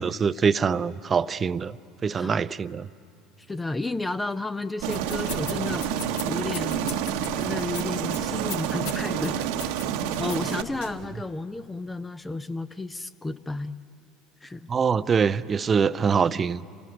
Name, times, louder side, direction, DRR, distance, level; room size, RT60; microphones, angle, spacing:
voice 1, 0.0-1.8 2.0-2.9 14.7-16.6, right 6 dB, 30° right, 16 dB, 0.6 m, -24 dB
voice 2, 3.4-6.8 7.4-9.4 10.2-13.8 14.4-14.7, left 2 dB, 15° left, 12 dB, 0.6 m, -32 dB
sound 1, 4.8-11.1, left 5 dB, 75° left, 1.7 m, -41 dB
Aircraft, 4.8-10.6, right 9 dB, 65° right, 1.1 m, -28 dB
28.0 x 19.0 x 9.7 m, 2.6 s
hypercardioid pair, 70°, 0 cm